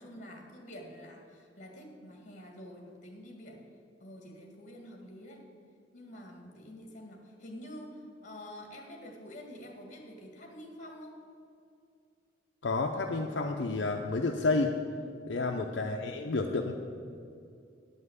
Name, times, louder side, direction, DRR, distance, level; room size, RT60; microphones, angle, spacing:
voice 1, 0.0-3.6 4.0-5.4 5.9-11.1 15.4-15.7, equal, 40° left, 2 dB, 1.8 m, -47 dB
voice 2, 12.6-14.7 15.3-16.7, left 3 dB, 70° left, 2 dB, 0.6 m, -30 dB
10.0 x 5.5 x 8.0 m, 2.4 s
head